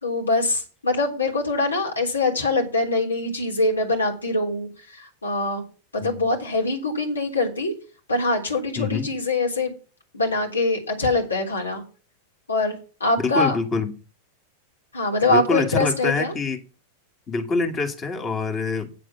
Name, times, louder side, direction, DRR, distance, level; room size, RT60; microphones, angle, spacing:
voice 1, 0.0-5.6 5.9-7.7 8.1-9.7 10.1-11.8 12.5-12.7 13.0-13.5 14.9-16.3, left 2 dB, 75° left, 3.4 m, -23 dB
voice 2, 8.8-9.1 13.2-13.9 15.2-16.6 17.3-18.9, left 4 dB, 25° left, 2.0 m, -25 dB
8.7 x 7.6 x 5.9 m
figure-of-eight pair, 90°, 0 cm